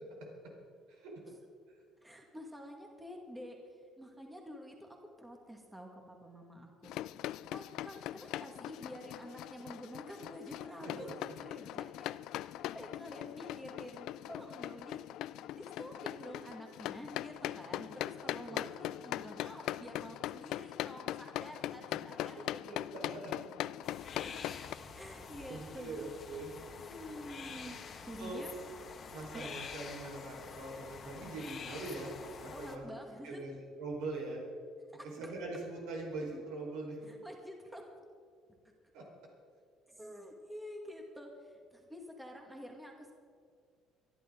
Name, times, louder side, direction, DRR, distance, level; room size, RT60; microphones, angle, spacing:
voice 1, 2.0-3.6 4.0-6.9 7.5-12.1 12.7-15.0 15.5-23.4 24.2-24.4 24.9-26.0 26.6-28.5 29.3-29.5 32.5-33.4 34.9-35.3 37.1-37.9 39.9-43.1, equal, 10° right, 1 dB, 2.0 m, -49 dB
sound 1, 6.8-24.8, left 14 dB, 75° left, 0.3 m, -41 dB
voice 2, 10.8-11.1 18.5-18.7 22.7-23.3 25.5-26.5 28.2-28.4 29.1-33.0 33.2-34.4 35.0-37.0 38.9-39.0, right 2 dB, 85° right, -1 dB, 4.6 m, -42 dB
sound 2, 23.8-32.8, left 5 dB, 40° left, 1.5 m, -47 dB
24.0 x 11.5 x 3.8 m, 2.2 s
cardioid pair, 115°, 0 cm